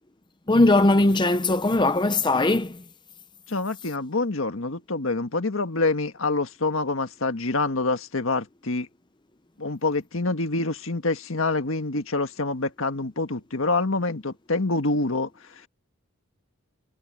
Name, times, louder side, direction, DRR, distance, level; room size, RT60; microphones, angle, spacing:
voice 1, 0.5-2.8, left 2 dB, 20° left, 0.7 m, -20 dB
voice 2, 3.5-8.9 9.6-15.3, left 3 dB, 70° left, 1.6 m, -26 dB
head